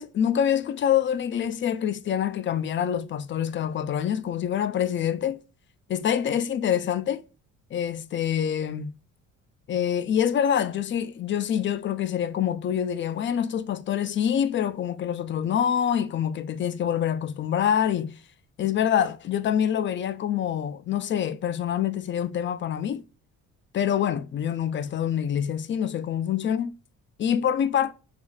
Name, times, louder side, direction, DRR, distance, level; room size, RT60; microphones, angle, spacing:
voice 1, 0.0-5.4 5.9-7.2 7.7-8.9 9.7-18.1 18.6-23.0 23.7-26.7 27.2-27.9, left 9 dB, 40° left, 0.4 m, -26 dB
3.3 x 3.1 x 2.3 m
cardioid pair, 90°, 30 cm